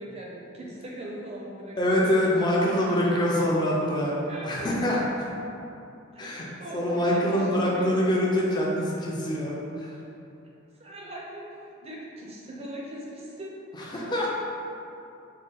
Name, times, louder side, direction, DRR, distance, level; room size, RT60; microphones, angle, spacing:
voice 1, 0.0-3.0 4.3-5.1 6.1-8.2 10.8-13.5, right 1 dB, 30° right, -4 dB, 0.5 m, -40 dB
voice 2, 1.8-4.2 4.4-5.0 6.2-6.4 6.7-9.9 13.9-14.3, left 1 dB, 20° left, -4 dB, 0.5 m, -25 dB
3.7 x 2.2 x 3.9 m, 2.7 s
head